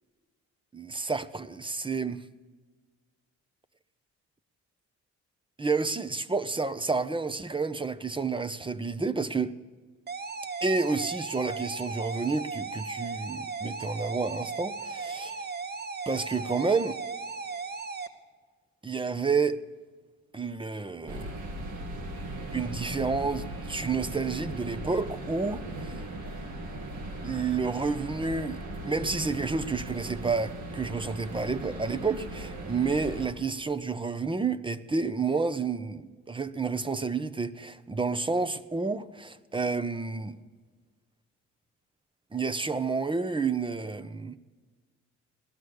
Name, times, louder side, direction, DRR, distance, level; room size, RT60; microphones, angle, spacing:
voice 1, 0.7-2.2 5.6-9.5 10.6-15.4 16.1-17.0 18.8-19.6 20.3-21.3 22.5-26.0 27.2-28.6 28.8-40.4 42.3-44.3, right 4 dB, 15° right, 0.7 m, -30 dB
sound 1, 10.1-18.1, right 4 dB, 35° right, 1.1 m, -36 dB
sound 2, 21.1-33.3, right 1 dB, 75° right, 2.3 m, -38 dB
17.5 x 12.5 x 6.4 m
cardioid pair, 90°, 30 cm